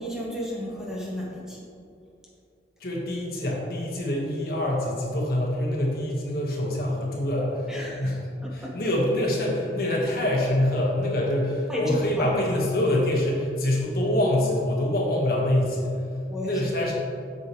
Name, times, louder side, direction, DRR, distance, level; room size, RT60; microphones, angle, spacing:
voice 1, 0.0-1.6 7.7-8.8 11.7-12.3 16.3-16.6, left 1 dB, 5° right, -4 dB, 1.0 m, -33 dB
voice 2, 2.8-8.2 8.5-15.9 16.4-16.9, left 1 dB, 55° left, -2 dB, 1.4 m, -25 dB
8.2 x 6.8 x 3.1 m, 2.6 s
head